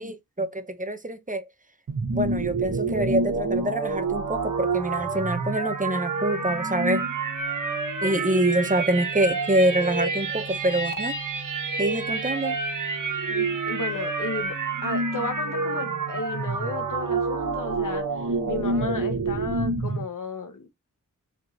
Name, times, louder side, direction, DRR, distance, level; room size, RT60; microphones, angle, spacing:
voice 1, 0.0-1.5 2.1-7.1 8.0-11.2 11.8-12.6, right 1 dB, 25° right, 0.9 m, -26 dB
sound 1, 1.9-20.0, right 3 dB, 80° right, 1.4 m, -28 dB
voice 2, 13.3-14.5 14.8-20.7, left 3 dB, 80° left, 1.2 m, -34 dB
5.0 x 3.9 x 2.6 m
cardioid pair, 50°, 32 cm